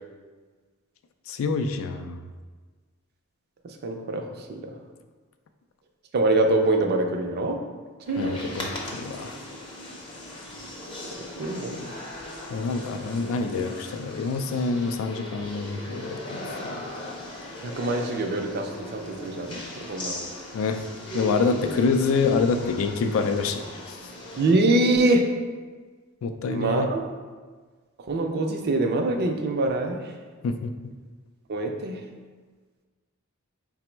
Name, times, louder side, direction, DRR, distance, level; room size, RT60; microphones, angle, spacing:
voice 1, 1.3-2.2 8.2-9.4 12.5-16.8 20.5-20.8 21.1-23.6 23.9-24.0 26.2-26.9 30.4-30.7, left 4 dB, 65° left, 6 dB, 0.3 m, -26 dB
voice 2, 3.6-4.7 6.1-7.6 8.1-8.4 11.4-11.8 17.6-20.2 24.4-25.2 26.5-27.0 28.1-30.1 31.5-32.0, right 2 dB, 50° right, 3 dB, 0.4 m, -24 dB
sound 1, 8.1-24.5, left 1 dB, 25° left, 0.6 m, -38 dB
4.2 x 2.0 x 4.3 m, 1.4 s
head